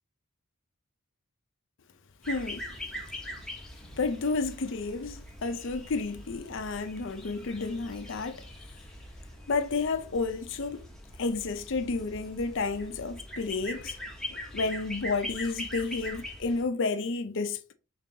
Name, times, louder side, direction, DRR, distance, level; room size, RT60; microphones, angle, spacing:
sound 1, 2.2-16.6, left 1 dB, 5° left, 0.9 m, -42 dB
voice 1, 2.3-2.8 3.9-8.5 9.5-10.8 11.2-14.0 14.3-17.6, left 4 dB, 60° left, 0.6 m, -31 dB
4.6 x 3.8 x 2.8 m
head